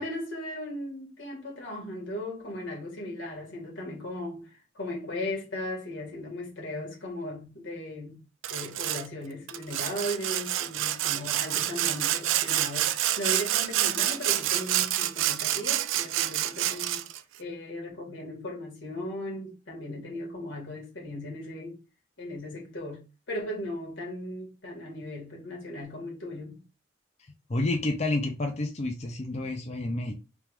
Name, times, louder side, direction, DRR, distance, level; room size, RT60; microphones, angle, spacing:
voice 1, 0.0-8.2 8.5-17.1 17.4-21.8 22.2-23.0 23.3-26.6, left 1 dB, 90° left, 1.6 m, -37 dB
Sawing, 8.4-9.1 9.5-17.2, right 13 dB, 90° right, 0.3 m, -28 dB
voice 2, 27.5-30.1, left 2 dB, 35° left, 0.5 m, -29 dB
3.5 x 2.3 x 4.5 m
head